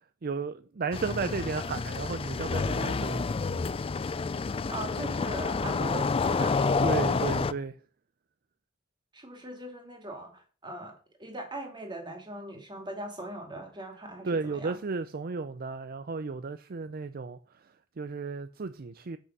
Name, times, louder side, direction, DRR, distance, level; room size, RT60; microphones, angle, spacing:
voice 1, 0.2-3.3 6.8-7.8 14.2-19.2, right 4 dB, 45° right, 0.5 m, -34 dB
sound 1, 0.9-7.5, left 4 dB, 25° left, 0.4 m, -29 dB
voice 2, 4.7-7.3 9.1-10.9 11.2-14.8, right 1 dB, 25° right, 2.6 m, -40 dB
8.3 x 6.2 x 6.0 m
head